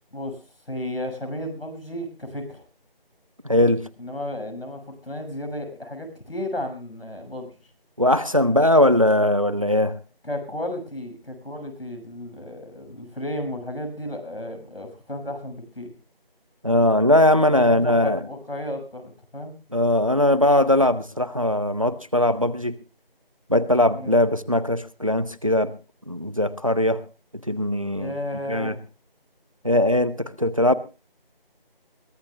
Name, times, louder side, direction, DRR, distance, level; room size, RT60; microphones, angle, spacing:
voice 1, 0.1-2.6 4.0-7.5 10.2-15.9 17.6-19.5 23.9-24.2 28.0-28.8, left 1 dB, 80° left, 4 dB, 6.7 m, -33 dB
voice 2, 3.4-3.9 8.0-9.9 16.6-18.2 19.7-22.8 23.5-25.7 26.1-27.0 27.5-28.1 28.5-28.7 29.6-30.7, left 1 dB, 35° right, 16 dB, 0.7 m, -20 dB
22.5 x 15.5 x 2.3 m, 0.32 s
figure-of-eight pair, 175°, 30 cm